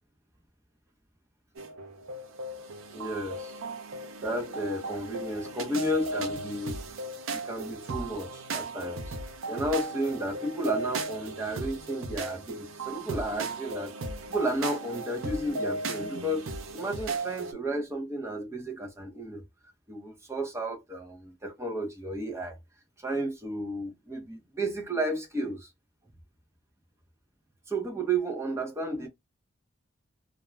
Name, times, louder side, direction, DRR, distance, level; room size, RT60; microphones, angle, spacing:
sound 1, 1.6-17.5, right 2 dB, 80° right, 0.5 m, -36 dB
voice 1, 2.9-3.6 4.2-6.8 7.3-9.2 9.5-13.9 14.3-19.4 19.9-22.6 23.0-25.7 27.7-29.1, right 1 dB, 15° right, 0.6 m, -32 dB
2.3 x 2.2 x 3.0 m
head